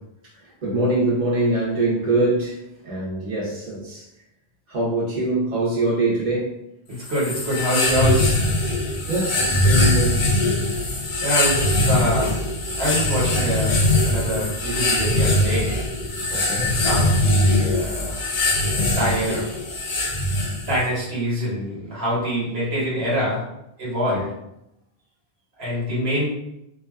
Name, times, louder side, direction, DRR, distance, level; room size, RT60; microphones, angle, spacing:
voice 1, 0.6-2.6 2.8-4.0 4.7-6.6 9.1-10.2 16.3-16.8, right 2 dB, 50° right, -6 dB, 1.0 m, -23 dB
voice 2, 6.9-8.3 10.7-10.9 11.2-12.3 12.8-15.8 16.7-18.2 18.8-19.5 20.6-23.4 23.8-24.3 25.6-26.3, equal, 85° right, -7 dB, 1.4 m, -25 dB
sound 1, 7.0-20.9, left 1 dB, 55° left, 0.6 m, -21 dB
2.6 x 2.3 x 2.3 m, 0.86 s
omnidirectional pair, 1.0 m